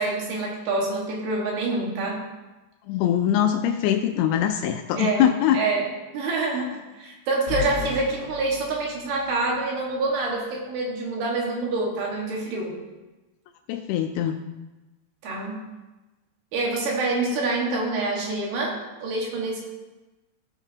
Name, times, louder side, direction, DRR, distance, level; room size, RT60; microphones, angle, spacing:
voice 1, 0.0-2.2 5.0-5.2 5.5-5.9 6.1-12.8 15.2-15.7 16.5-19.6, right 3 dB, 75° right, -2 dB, 3.5 m, -26 dB
voice 2, 2.9-5.6 13.7-14.4, left 10 dB, 85° left, 6 dB, 2.5 m, -22 dB
sound 1, 7.5-9.6, left 8 dB, 35° left, 3.8 m, -35 dB
15.0 x 7.3 x 2.8 m, 1.1 s
omnidirectional pair, 4.6 m